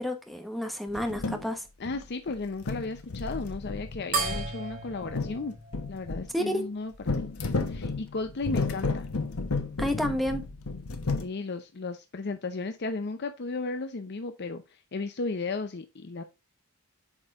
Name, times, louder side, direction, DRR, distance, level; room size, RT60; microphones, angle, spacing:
voice 1, 0.0-1.6 6.3-6.7 9.8-10.4, left 1 dB, ahead, 1.0 m, -30 dB
sound 1, 0.9-1.5 1.8-2.3 2.6-6.3 7.0-11.3, left 3 dB, 85° left, 1.0 m, -32 dB
voice 2, 1.8-5.5 5.9-7.3 7.7-9.1 11.2-16.2, left 3 dB, 50° left, 0.6 m, -34 dB
sound 2, 4.1-6.9, right 4 dB, 40° right, 4.1 m, -35 dB
8.1 x 5.4 x 2.5 m
head